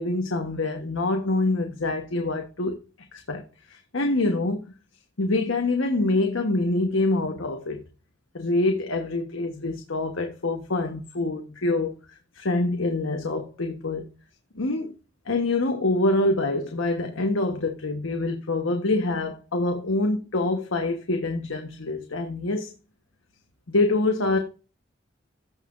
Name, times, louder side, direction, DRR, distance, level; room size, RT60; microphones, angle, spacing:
voice 1, 0.0-2.8 3.1-4.6 5.2-7.8 8.3-11.9 12.3-14.1 14.5-14.9 15.3-22.7 23.7-24.4, left 2 dB, 85° left, 1.2 m, -25 dB
14.5 x 5.7 x 2.5 m
head